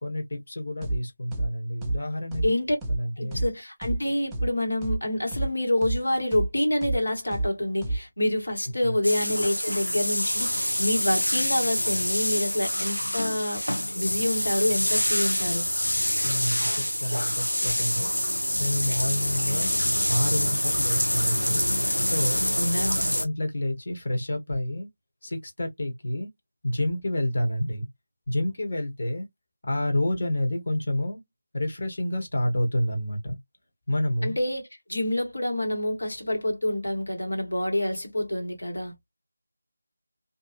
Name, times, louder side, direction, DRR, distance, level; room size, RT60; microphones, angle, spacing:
voice 1, 0.0-2.4 2.9-3.4 8.8-9.0 16.2-19.7 20.1-21.6 22.0-22.5 22.9-24.9 25.2-26.3 26.6-27.9 28.3-29.3 29.6-31.2 31.5-33.4 33.9-34.4, left 1 dB, 45° left, 1.1 m, -29 dB
sound 1, 0.8-1.0 1.3-1.5 1.8-2.0 2.3-2.5 2.8-3.0 3.3-3.5 3.8-4.0 4.3-4.5 4.8-5.0 5.3-5.5 5.8-6.0 6.3-6.5 6.8-7.0 7.3-7.5 7.8-8.0, right 2 dB, 5° right, 0.4 m, -28 dB
voice 2, 2.4-2.8 3.2-13.6 13.9-15.7 22.6-23.1 34.2-38.9, left 1 dB, 65° left, 1.4 m, -27 dB
sound 2, 9.0-23.2, equal, 85° left, 0.7 m, -26 dB
2.6 x 2.4 x 2.4 m
figure-of-eight pair, 165°, 0 cm